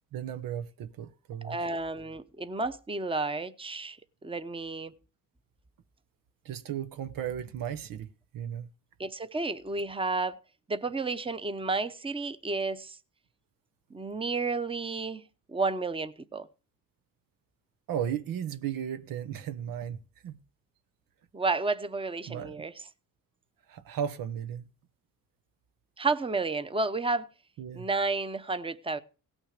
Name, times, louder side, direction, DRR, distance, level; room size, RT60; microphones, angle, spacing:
voice 1, 0.1-1.7 6.4-8.7 17.9-20.4 22.3-22.6 23.7-24.7 27.6-27.9, right 9 dB, 85° right, 1.0 m, -35 dB
voice 2, 1.4-4.0 4.2-4.9 9.0-10.4 10.7-13.0 13.9-16.5 21.3-22.7 26.0-27.3 27.7-29.0, right 3 dB, 15° right, 0.8 m, -31 dB
17.0 x 6.3 x 6.5 m
cardioid pair, 85°, 33 cm